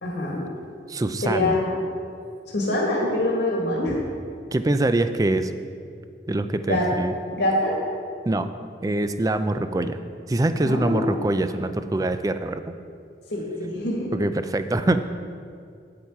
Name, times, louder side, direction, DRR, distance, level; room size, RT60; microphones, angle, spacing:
voice 1, 0.0-0.4 1.2-1.8 2.5-4.0 4.3-4.4 6.7-6.9 7.3-7.8 10.6-11.2 13.3-14.1, left 1 dB, 85° left, -3 dB, 1.9 m, -24 dB
voice 2, 0.9-1.6 4.5-5.5 6.3-7.1 8.3-8.5 8.8-10.0 10.3-12.7 14.1-15.0, right 2 dB, 20° right, 10 dB, 0.4 m, -24 dB
8.7 x 8.6 x 4.6 m, 2.3 s
head